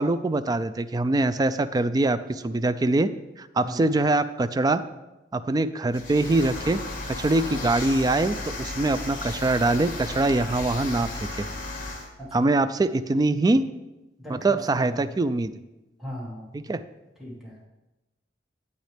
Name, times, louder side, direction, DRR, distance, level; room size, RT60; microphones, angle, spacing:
voice 1, 0.0-3.1 3.4-4.8 5.3-6.8 7.1-11.5 12.3-13.7 14.4-15.5 16.7-16.8, right 2 dB, 20° right, 12 dB, 0.3 m, -23 dB
sound 1, 5.9-12.1, left 2 dB, 50° left, 1.5 m, -34 dB
voice 2, 12.2-12.5 14.2-15.0 16.0-16.7 17.2-17.6, equal, ahead, -4 dB, 1.9 m, -38 dB
9.0 x 8.3 x 3.4 m, 1.0 s
head